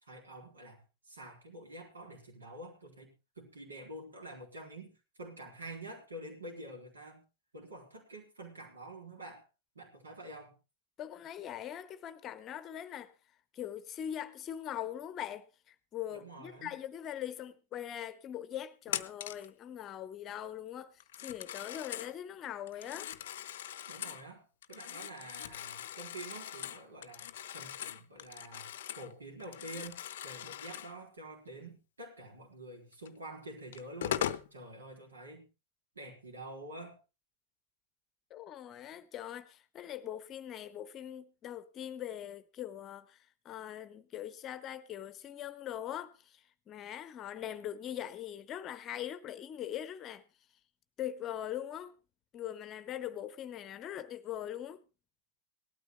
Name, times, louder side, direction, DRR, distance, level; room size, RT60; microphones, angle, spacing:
voice 1, 0.0-0.8 1.1-4.9 5.2-7.2 7.5-9.4 9.7-10.6 16.1-16.8 23.9-27.2 27.5-34.2 34.5-35.5 35.9-37.0, right 1 dB, 75° right, 4.2 m, -48 dB
voice 2, 11.0-13.1 13.5-23.1 38.3-50.2 51.0-51.9 52.3-54.8, left 11 dB, 30° left, 0.9 m, -42 dB
Telephone, 18.9-19.5 21.0-22.1 22.7-24.2 24.6-29.1 29.4-31.0 33.1-33.2 33.7-34.5, left 11 dB, 60° left, 0.7 m, -40 dB
18.0 x 12.5 x 3.1 m
figure-of-eight pair, 90°, 0 cm